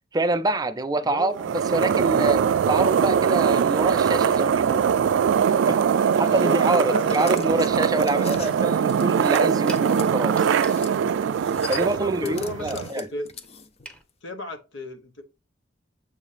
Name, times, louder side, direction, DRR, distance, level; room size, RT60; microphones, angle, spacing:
voice 1, 0.1-4.9 5.5-10.5 11.7-13.1, right 2 dB, 20° right, 0.5 m, -26 dB
voice 2, 1.0-1.5 6.2-7.5 11.7-13.3 14.2-15.2, left 1 dB, 85° left, 1.1 m, -34 dB
sound 1, 1.3-12.9, right 7 dB, 80° right, 0.3 m, -22 dB
sound 2, 6.9-10.1 10.5-11.0 11.2-13.9, left 6 dB, 35° left, 0.5 m, -40 dB
sound 3, 7.1-14.0, right 1 dB, 5° left, 0.8 m, -48 dB
7.3 x 2.8 x 4.9 m
head